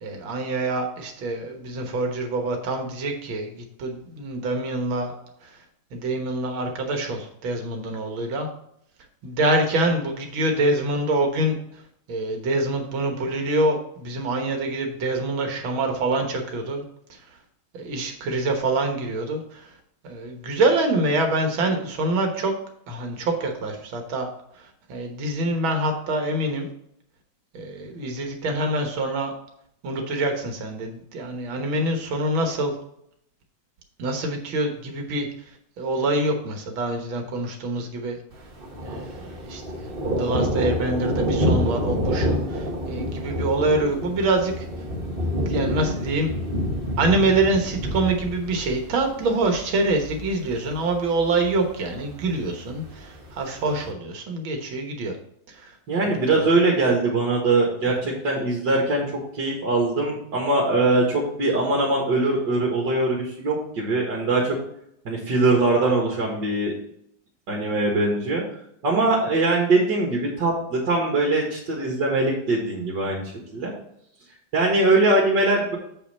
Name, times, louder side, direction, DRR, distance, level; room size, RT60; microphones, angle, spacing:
voice 1, 0.0-5.6 5.9-8.5 9.2-11.8 12.1-16.8 17.1-17.4 17.7-19.8 20.0-22.6 22.9-24.3 24.5-26.7 27.5-29.3 29.8-32.8 34.0-38.2 38.8-44.7 45.5-46.3 47.0-55.2 55.5-55.8 56.0-56.5 57.9-58.2, right 2 dB, 75° right, 4 dB, 2.0 m, -25 dB
Thunder, 38.3-53.9, equal, 35° right, 1.1 m, -28 dB
voice 2, 55.9-59.0 59.3-64.6 65.1-66.7 67.5-68.4 68.8-73.2 73.5-73.7 74.5-75.8, right 2 dB, 60° right, -2 dB, 2.2 m, -22 dB
7.4 x 5.7 x 4.2 m, 0.73 s
omnidirectional pair, 2.2 m